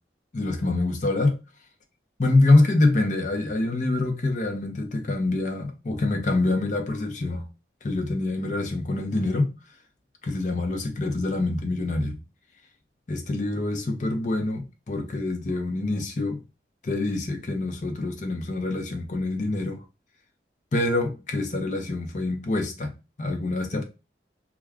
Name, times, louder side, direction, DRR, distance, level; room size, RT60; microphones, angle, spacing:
voice 1, 0.3-1.4 2.2-7.4 7.8-9.5 10.2-12.2 13.1-16.4 16.8-19.8 20.7-22.9 23.2-23.8, left 2 dB, 45° left, 0.6 m, -25 dB
2.3 x 2.2 x 3.3 m
head